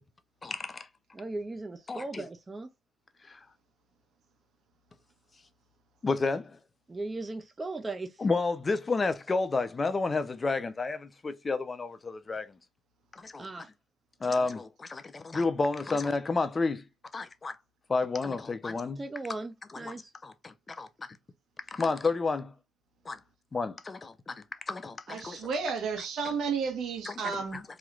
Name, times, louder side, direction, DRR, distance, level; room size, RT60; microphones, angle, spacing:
voice 1, 0.4-0.9 1.9-2.3 3.3-3.4 6.0-6.5 8.2-12.5 13.1-13.5 14.2-16.8 17.1-17.6 17.9-19.0 19.8-21.2 21.7-22.5 23.1-23.2 23.5-25.4 27.1-27.2 27.5-27.6, left 3 dB, 30° left, 0.5 m, -31 dB
voice 2, 1.1-2.7 6.9-8.1 13.4-13.7 19.0-20.1, right 2 dB, 25° right, 0.4 m, -37 dB
voice 3, 25.1-27.6, right 5 dB, 75° right, 1.1 m, -32 dB
3.1 x 2.9 x 2.4 m
cardioid pair, 90°, 0 cm